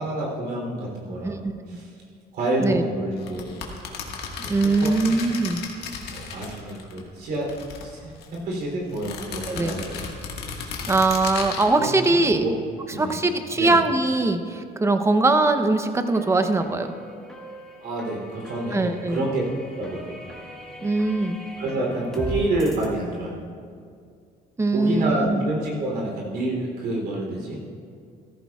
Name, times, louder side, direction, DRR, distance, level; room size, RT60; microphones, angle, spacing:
voice 1, 0.0-1.4 1.7-1.9 2.3-3.6 4.8-4.9 6.1-7.5 7.8-10.0 10.4-10.8 11.8-11.9 12.3-12.5 12.9-13.1 13.5-13.8 17.8-19.4 19.7-20.1 21.6-23.4 24.7-27.6, right 2 dB, 70° right, -2 dB, 3.2 m, -28 dB
voice 2, 1.2-1.8 2.6-2.8 4.4-5.6 9.5-9.9 10.9-12.4 13.0-16.9 18.7-19.3 20.8-21.4 24.6-25.4, right 2 dB, 15° right, 8 dB, 0.7 m, -22 dB
sound 1, 3.2-7.0 7.3-8.4 8.9-11.7, left 5 dB, 75° left, 1.6 m, -34 dB
sound 2, 15.6-22.9, equal, 5° left, 2.0 m, -39 dB
14.5 x 14.0 x 2.4 m, 2.3 s
cardioid pair, 110°, 17 cm